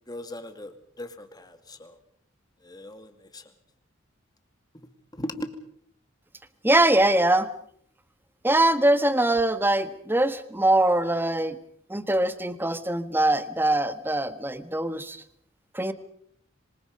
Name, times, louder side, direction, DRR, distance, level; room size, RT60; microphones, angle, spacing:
voice 1, 0.1-2.0 2.6-3.4 5.1-5.5, left 1 dB, 20° left, 8 dB, 2.3 m, -38 dB
voice 2, 6.6-7.5 8.4-11.6 11.9-15.2 15.7-15.9, right 1 dB, 10° right, 11 dB, 1.3 m, -22 dB
26.0 x 25.5 x 5.4 m, 0.64 s
head